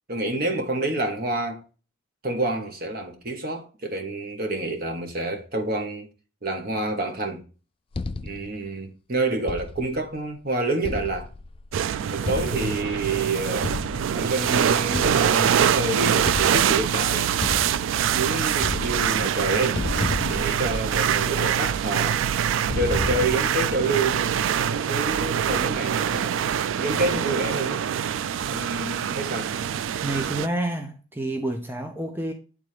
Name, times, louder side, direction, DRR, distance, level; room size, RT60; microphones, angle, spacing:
voice 1, 0.1-1.6 2.2-6.1 6.4-7.4 8.2-11.3 12.1-13.7 14.1-17.4 18.1-19.8 20.2-22.2 22.7-24.2 24.6-26.4 26.8-27.9 28.5-29.5, right 2 dB, 50° right, 1.3 m, -28 dB
sound 1, 7.9-8.6 9.5-10.1 10.8-11.7 12.3-13.0 13.6-14.2 14.9-15.7 16.3-16.9 17.4-18.2 18.5-19.4 19.7-21.2 22.7-23.7, left 3 dB, 25° left, 0.3 m, -32 dB
sound 2, 11.7-30.5, right 9 dB, 80° right, 0.3 m, -24 dB
voice 2, 30.0-32.3, right 1 dB, 10° right, 0.6 m, -29 dB
9.1 x 3.6 x 3.3 m
head